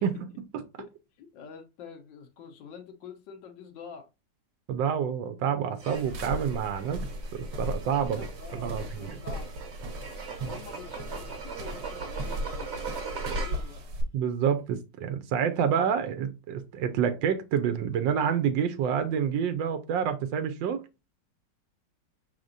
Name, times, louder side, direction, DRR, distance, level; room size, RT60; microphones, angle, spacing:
voice 1, 0.0-0.6 4.7-7.0 7.3-8.3 8.5-9.2 10.4-10.5 14.1-20.8, right 8 dB, 90° right, 1.4 m, -28 dB
voice 2, 1.2-4.1 8.0-9.6 10.5-13.8, left 6 dB, 90° left, 1.5 m, -46 dB
sound 1, 5.8-13.9, right 5 dB, 40° right, 1.3 m, -40 dB
sound 2, 5.9-14.0, equal, 65° right, 1.4 m, -37 dB
4.9 x 3.8 x 2.6 m
omnidirectional pair, 1.9 m